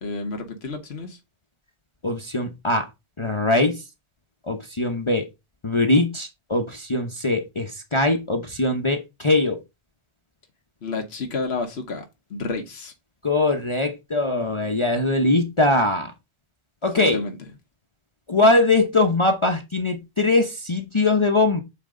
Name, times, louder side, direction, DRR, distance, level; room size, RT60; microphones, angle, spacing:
voice 1, 0.0-1.2 10.8-12.0 12.3-12.9 17.0-17.4, left 3 dB, 85° left, 1.4 m, -30 dB
voice 2, 2.0-2.9 3.2-3.8 4.5-5.2 5.6-9.6 13.2-16.1 16.8-17.2 18.3-21.6, left 2 dB, 30° left, 0.9 m, -21 dB
7.5 x 4.4 x 3.7 m
omnidirectional pair, 1.0 m